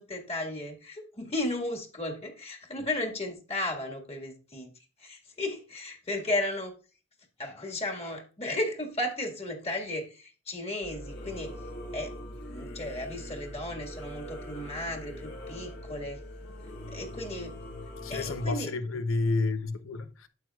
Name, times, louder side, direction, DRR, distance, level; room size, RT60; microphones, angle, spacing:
voice 1, 0.0-4.7 5.0-6.7 7.4-11.6 11.9-12.2 12.5-16.2 16.9-17.6 18.1-18.7, left 1 dB, 30° left, 1.7 m, -34 dB
Singing / Musical instrument, 10.8-18.6, left 1 dB, 55° left, 1.7 m, -42 dB
voice 2, 18.0-20.3, left 3 dB, 80° left, 0.7 m, -30 dB
9.2 x 7.8 x 2.3 m
head